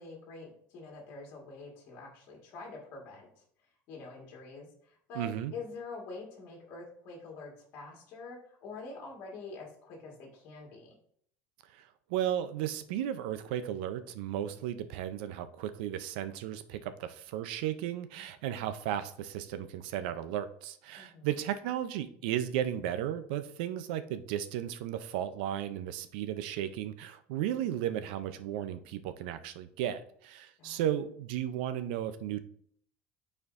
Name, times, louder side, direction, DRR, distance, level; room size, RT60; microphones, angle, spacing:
voice 1, 0.0-3.4 3.9-10.9 20.9-21.3 30.6-30.8, left 3 dB, 45° left, -1 dB, 1.6 m, -46 dB
voice 2, 5.2-5.5 11.7-32.4, right 11 dB, 85° right, 11 dB, 0.5 m, -35 dB
9.5 x 4.4 x 2.5 m, 0.64 s
cardioid pair, 175°, 5 cm